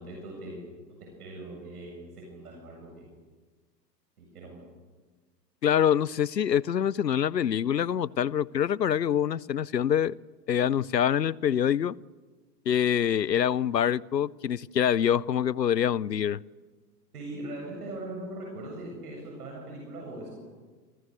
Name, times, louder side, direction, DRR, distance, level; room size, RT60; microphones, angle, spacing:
voice 1, 0.0-3.1 4.2-4.6 17.1-20.4, right 1 dB, 65° right, 7.6 m, -41 dB
voice 2, 5.6-10.1 10.5-11.9 12.7-16.4, left 9 dB, 80° left, 0.7 m, -25 dB
28.0 x 28.0 x 6.6 m
figure-of-eight pair, 95°, 50 cm